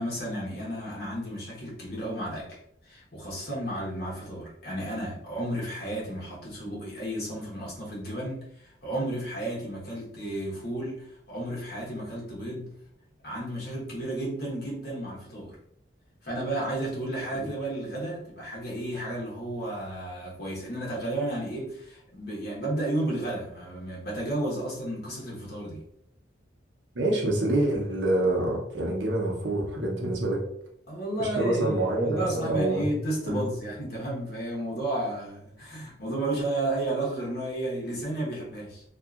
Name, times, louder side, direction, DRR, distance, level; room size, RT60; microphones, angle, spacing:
voice 1, 0.0-12.7 13.2-15.6 16.2-25.8 30.9-38.8, right 1 dB, 55° left, -5 dB, 1.1 m, -32 dB
voice 2, 26.9-30.4 31.2-32.8 33.2-33.4, right 1 dB, 70° right, -1 dB, 0.8 m, -26 dB
2.8 x 2.4 x 2.4 m, 0.72 s
head